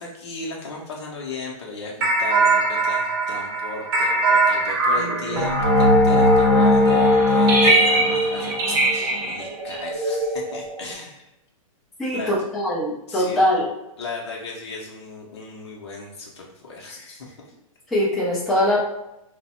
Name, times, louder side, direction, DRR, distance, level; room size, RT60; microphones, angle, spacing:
voice 1, 0.0-8.5 8.9-11.2 12.1-12.3 13.1-13.4 14.0-17.5, left 3 dB, 50° left, -2 dB, 0.7 m, -36 dB
sound 1, 2.0-10.9, equal, 40° right, 0.6 m, -19 dB
voice 2, 12.0-13.7 17.9-18.8, left 1 dB, ahead, -10 dB, 0.5 m, -22 dB
3.2 x 2.0 x 4.2 m, 0.90 s
hypercardioid pair, 180°, 18 cm